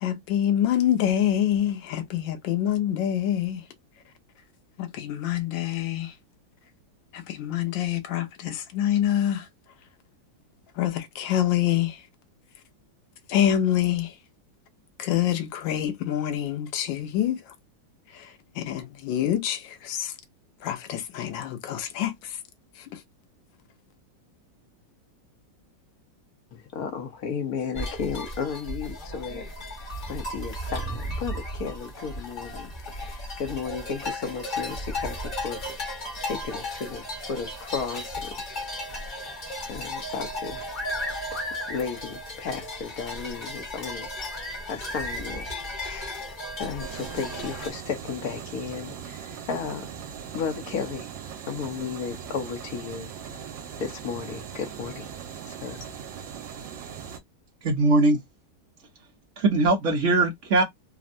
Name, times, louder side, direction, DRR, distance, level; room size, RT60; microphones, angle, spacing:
voice 1, 0.0-3.6 4.8-6.1 7.1-9.5 10.8-12.0 13.3-14.1 15.0-17.4 18.1-20.1 20.6-22.4 22.8-23.0, left 11 dB, 85° left, 1.4 m, -26 dB
voice 2, 26.5-29.4 30.1-35.9 36.2-38.3 39.7-40.7 41.7-44.1 44.7-45.5 45.7-46.3 46.6-49.9 50.3-51.1 51.5-53.1 53.8-55.1 55.5-55.8, left 6 dB, 60° left, 1.1 m, -34 dB
sound 1, 27.7-47.7, left 1 dB, 30° left, 1.0 m, -35 dB
sound 2, 46.8-57.2, right 7 dB, 85° right, 1.3 m, -40 dB
voice 3, 57.6-58.2 59.4-60.6, right 2 dB, 60° right, 0.8 m, -21 dB
3.5 x 2.1 x 2.5 m
omnidirectional pair, 2.0 m